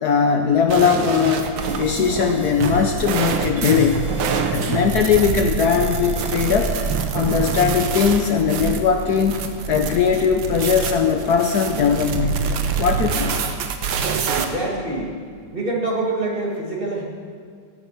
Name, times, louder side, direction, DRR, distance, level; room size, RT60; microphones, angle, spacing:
voice 1, 0.0-1.5 1.8-4.1 4.5-6.8 7.1-9.4 9.7-12.5 12.8-13.5, left 6 dB, 65° left, 4 dB, 1.2 m, -19 dB
sound 1, 0.7-14.5, right 6 dB, 80° right, 1.7 m, -25 dB
sound 2, 1.6-3.2 3.6-5.2 5.6-7.2, left 1 dB, 20° left, 0.3 m, -40 dB
voice 2, 14.3-15.2 15.5-17.0, right 2 dB, 30° right, -3 dB, 2.0 m, -25 dB
14.0 x 10.0 x 5.7 m, 2.2 s
omnidirectional pair, 2.1 m